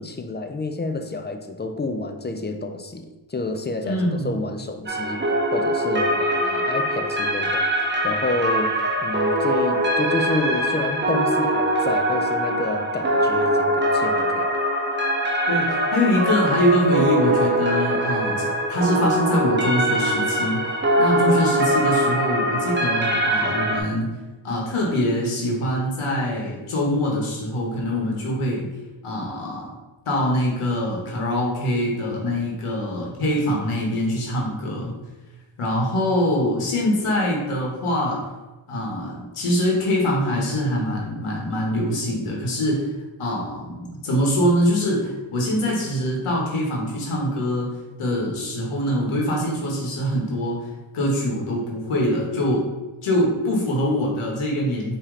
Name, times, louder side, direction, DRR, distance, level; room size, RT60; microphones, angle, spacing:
voice 1, 0.0-5.2 5.5-7.6 8.0-14.5, left 2 dB, 25° left, 7 dB, 0.4 m, -29 dB
voice 2, 3.8-4.4 15.5-20.6 21.0-24.1 24.4-28.7 29.0-29.7 30.1-34.9 35.6-38.2 38.7-42.9 43.2-47.7 48.0-52.6 53.0-55.0, equal, 90° left, -2 dB, 1.2 m, -23 dB
sound 1, 4.9-23.8, equal, 20° right, 0.8 m, -22 dB
4.7 x 3.0 x 3.6 m, 1.1 s
cardioid pair, 65°, 49 cm